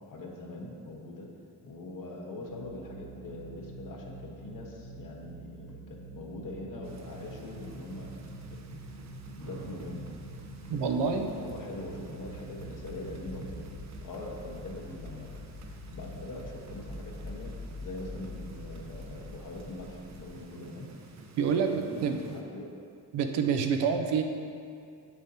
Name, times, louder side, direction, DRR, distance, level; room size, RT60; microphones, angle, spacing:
voice 1, 0.0-1.3 1.6-8.1 9.4-10.0 10.8-11.1 11.4-13.7 14.0-15.3 15.9-17.5 17.8-20.9 21.5-22.7, left 2 dB, 45° left, -1 dB, 1.2 m, -42 dB
sound 1, 2.5-15.8, right 2 dB, 80° left, 1.0 m, -48 dB
sound 2, 5.9-20.4, left 2 dB, 25° left, 0.8 m, -47 dB
sound 3, 6.8-22.4, right 4 dB, 40° right, 0.6 m, -50 dB
voice 2, 10.7-11.3 21.4-22.2 23.1-24.2, right 6 dB, 80° right, 5 dB, 0.7 m, -27 dB
7.3 x 7.0 x 2.8 m, 2.5 s
cardioid pair, 90°, 43 cm